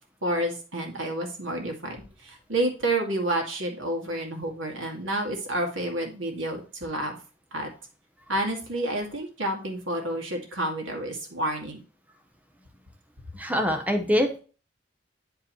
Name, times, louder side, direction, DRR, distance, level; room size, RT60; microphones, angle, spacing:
voice 1, 0.2-7.2 7.5-7.7 8.3-11.8, right 1 dB, 80° right, 3 dB, 2.2 m, -29 dB
voice 2, 13.3-14.4, equal, 5° right, 5 dB, 0.8 m, -24 dB
9.6 x 4.8 x 3.0 m, 0.36 s
head